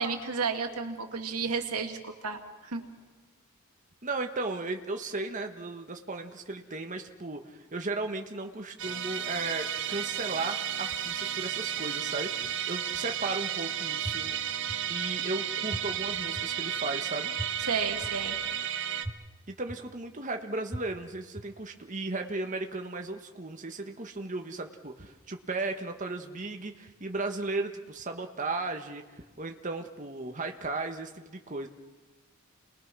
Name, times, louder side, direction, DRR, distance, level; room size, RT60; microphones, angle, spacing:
voice 1, 0.0-2.9 17.6-18.4, right 5 dB, 90° right, 5 dB, 2.4 m, -32 dB
voice 2, 4.0-14.4 14.9-17.3 19.5-29.0 29.4-31.7, right 3 dB, 35° right, 4 dB, 1.4 m, -35 dB
Musical instrument, 8.8-19.1, right 9 dB, 55° right, 1.3 m, -33 dB
sound 1, 14.0-14.1 14.7-14.8 15.7-15.8 16.4-16.5 17.4-17.5 18.0-18.1 19.0-19.1 19.7-19.8 20.7-20.8 21.4-21.5, right 1 dB, 10° right, 0.7 m, -35 dB
29.0 x 21.5 x 6.2 m, 1.3 s
head